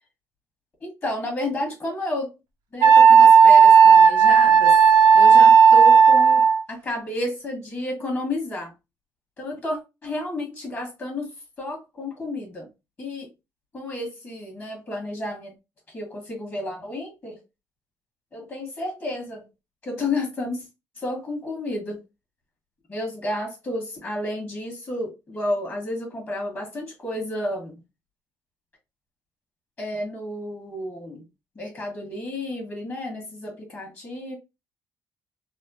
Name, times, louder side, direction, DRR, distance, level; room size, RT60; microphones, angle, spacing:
voice 1, 0.8-2.3 2.7-4.8 5.1-8.7 9.4-11.3 11.6-12.7 13.0-13.3 13.7-15.5 15.9-17.4 18.3-19.4 19.8-20.6 21.0-22.0 22.9-27.8 29.8-31.2 31.5-34.3, left 1 dB, 35° left, 1.3 m, -31 dB
Wind instrument woodwind instrument, 2.8-6.6, right 6 dB, 85° right, 0.6 m, -12 dB
3.5 x 2.0 x 2.7 m
cardioid pair, 110°, 7 cm